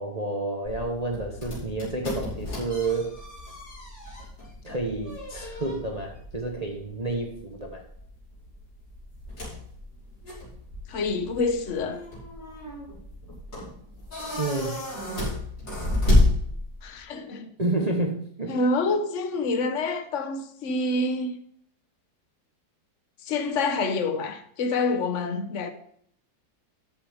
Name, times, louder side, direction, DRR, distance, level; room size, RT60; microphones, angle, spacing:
voice 1, 0.0-3.2 4.6-7.8 14.4-14.8 17.6-18.7, right 2 dB, 25° right, 1.2 m, -30 dB
sound 1, 0.6-17.0, left 1 dB, 85° left, 6.4 m, -30 dB
voice 2, 10.9-12.0 16.8-17.5 18.5-21.4 23.2-25.7, left 3 dB, 45° left, 1.4 m, -27 dB
13.0 x 8.5 x 3.6 m
omnidirectional pair, 1.9 m